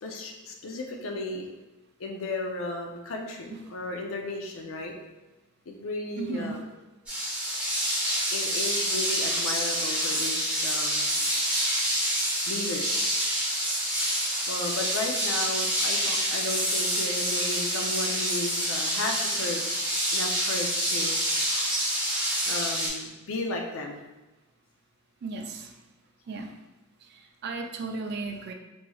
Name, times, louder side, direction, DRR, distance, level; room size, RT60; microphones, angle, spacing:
voice 1, 0.0-1.5 2.0-4.9 5.7-6.6 8.3-11.2 12.5-13.1 14.5-19.9 20.1-21.2 22.5-24.0, left 2 dB, 65° left, 2 dB, 0.5 m, -34 dB
voice 2, 6.2-6.6 25.2-25.8 26.3-26.5 27.0-28.5, right 3 dB, 50° right, 4 dB, 0.3 m, -35 dB
sound 1, 7.1-22.9, equal, 5° right, 0.8 m, -27 dB
3.0 x 2.9 x 2.3 m, 1.1 s
head